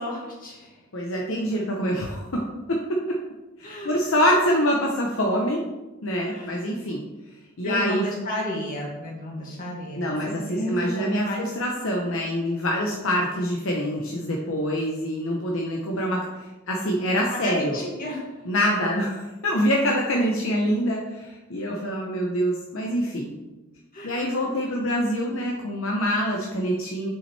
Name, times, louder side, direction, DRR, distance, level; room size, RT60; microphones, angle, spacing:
voice 1, 0.0-0.8 3.6-4.1 6.3-6.5 7.6-11.5 17.3-18.2 23.9-24.4, left 1 dB, 45° left, -3 dB, 2.1 m, -32 dB
voice 2, 0.9-2.4 2.7-3.2 3.6-5.6 6.0-7.0 7.6-8.0 10.0-16.2 16.7-17.8 18.4-23.3 24.0-27.1, equal, 70° left, -1 dB, 0.9 m, -25 dB
7.1 x 5.7 x 3.3 m, 1.1 s
head